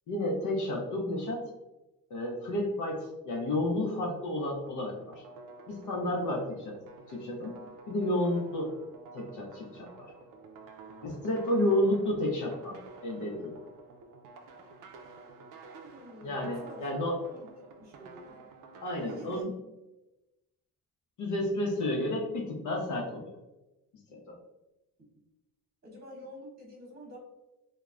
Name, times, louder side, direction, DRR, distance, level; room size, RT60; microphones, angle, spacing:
voice 1, 0.1-1.4 2.1-5.2 5.7-6.7 7.1-7.5 7.9-8.7 9.1-10.1 11.0-12.8 13.0-13.6 16.2-17.1 18.8-19.5 21.2-23.3 24.1-24.4, left 1 dB, 60° left, -1 dB, 0.6 m, -31 dB
sound 1, 4.7-19.4, right 4 dB, 70° right, 0.5 m, -50 dB
voice 2, 11.4-11.9 15.8-16.9 17.2-18.4 18.9-19.4 25.8-27.2, equal, 30° right, -2 dB, 1.0 m, -48 dB
3.1 x 2.1 x 2.3 m, 1.0 s
cardioid pair, 115°, 34 cm